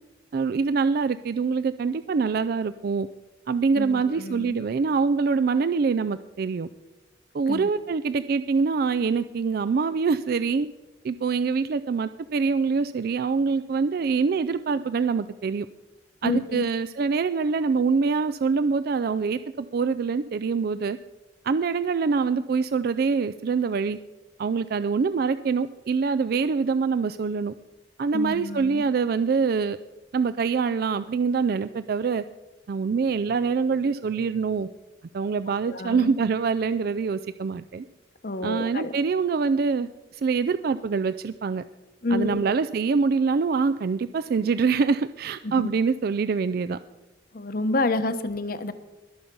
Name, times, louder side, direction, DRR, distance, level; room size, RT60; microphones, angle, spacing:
voice 1, 0.3-3.1 3.5-6.7 7.3-10.7 11.0-15.7 16.2-21.0 21.4-24.0 24.4-27.5 28.0-29.8 30.1-32.2 32.7-34.7 35.1-37.8 38.4-41.6 42.1-46.8, right 5 dB, 55° right, 13 dB, 0.3 m, -25 dB
voice 2, 3.7-4.6 7.5-7.7 16.2-16.7 28.1-28.8 35.5-36.1 38.2-38.9 42.0-42.5 45.4-45.7 47.3-48.7, left 2 dB, 50° left, 11 dB, 0.9 m, -28 dB
21.0 x 7.1 x 5.3 m, 1.1 s
head